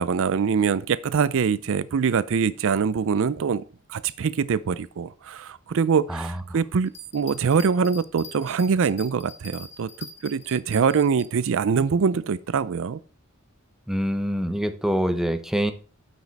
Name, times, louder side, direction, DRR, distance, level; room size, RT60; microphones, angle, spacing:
voice 1, 0.0-3.6 3.9-13.0, right 6 dB, 65° right, 0.4 m, -24 dB
sound 1, 6.9-11.3, left 5 dB, 30° left, 1.8 m, -44 dB
voice 2, 13.9-15.7, equal, ahead, 0.8 m, -25 dB
9.5 x 7.2 x 4.1 m
head